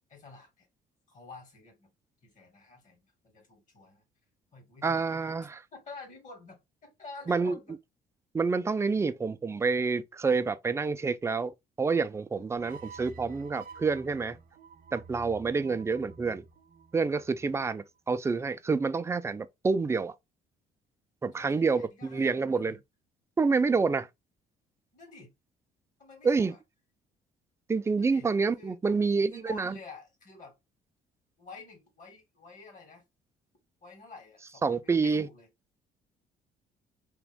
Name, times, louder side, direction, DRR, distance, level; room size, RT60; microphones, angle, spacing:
voice 1, 0.1-0.7 1.1-1.9 2.2-4.0 4.5-5.1 5.7-7.8 9.6-9.7 12.3-12.7 17.4-17.8 21.4-22.8 24.9-25.3 26.0-26.6 28.0-28.3 28.6-30.6 31.4-33.0 33.8-35.5, left 3 dB, 50° left, 2.3 m, -50 dB
voice 2, 4.8-5.6 7.3-7.6 8.3-14.4 14.9-16.5 16.9-20.1 21.2-22.8 23.4-24.1 26.2-26.5 27.7-29.8 34.6-35.3, right 4 dB, 15° right, 0.4 m, -28 dB
sound 1, 12.6-17.8, right 5 dB, 55° right, 0.7 m, -50 dB
3.6 x 3.0 x 3.5 m
cardioid pair, 110°, 17 cm